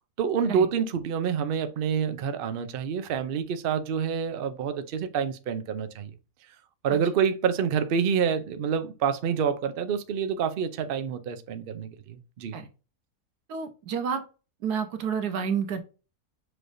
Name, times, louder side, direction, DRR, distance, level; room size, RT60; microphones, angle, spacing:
voice 1, 0.2-6.1 6.8-12.6, right 7 dB, 70° right, 0.5 m, -27 dB
voice 2, 13.5-14.2 14.6-15.8, right 7 dB, 90° right, 1.3 m, -29 dB
6.2 x 3.3 x 2.5 m
omnidirectional pair, 1.7 m